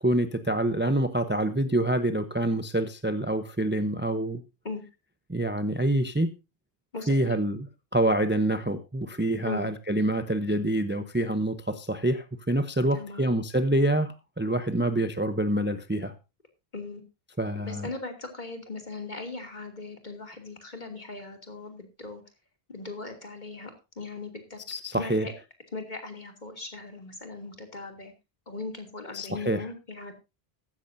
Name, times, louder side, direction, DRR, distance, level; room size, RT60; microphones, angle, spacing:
voice 1, 0.0-4.4 5.3-6.3 7.1-7.7 7.9-16.1 17.4-17.9 24.7-25.3 29.1-29.7, right 1 dB, 10° right, 10 dB, 0.7 m, -26 dB
voice 2, 6.9-7.3 9.5-9.7 12.9-13.3 16.7-17.0 17.6-22.2 22.7-24.6 24.9-25.3 25.7-28.1 28.5-30.1, left 3 dB, 45° left, 4 dB, 2.9 m, -39 dB
15.5 x 13.5 x 2.7 m, 0.26 s
omnidirectional pair, 1.1 m